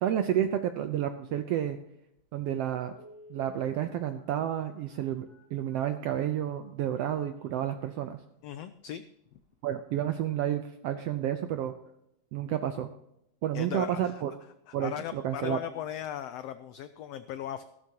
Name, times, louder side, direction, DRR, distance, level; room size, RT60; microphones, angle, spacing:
voice 1, 0.0-1.8 2.3-2.9 3.3-8.2 9.6-11.7 12.3-12.9 13.4-14.3 14.7-15.6, right 10 dB, 80° right, 9 dB, 1.4 m, -30 dB
Telephone, 2.2-2.3 2.9-7.8 8.3-8.4 8.8-8.9 9.3-9.6 9.9-10.0, left 1 dB, 20° right, 5.1 m, -55 dB
voice 2, 8.4-9.0 9.3-9.4 13.5-14.2 14.7-17.6, left 11 dB, 90° left, 11 dB, 1.4 m, -38 dB
15.5 x 13.0 x 2.9 m, 0.79 s
omnidirectional pair, 3.5 m